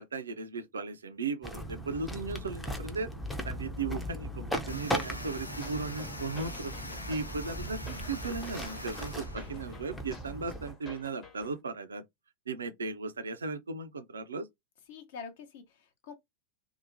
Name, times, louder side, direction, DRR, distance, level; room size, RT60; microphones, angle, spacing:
voice 1, 0.0-3.1 3.4-6.7 7.1-12.0 12.5-14.5, right 4 dB, 70° right, 0.5 m, -36 dB
sound 1, 1.4-10.7, equal, 5° left, 0.5 m, -38 dB
sound 2, 4.7-9.8, left 1 dB, 85° left, 0.4 m, -44 dB
sound 3, 5.6-11.6, left 4 dB, 30° left, 0.8 m, -52 dB
voice 2, 14.9-16.1, left 5 dB, 55° left, 0.8 m, -46 dB
2.8 x 2.1 x 2.6 m
figure-of-eight pair, 90°, 0 cm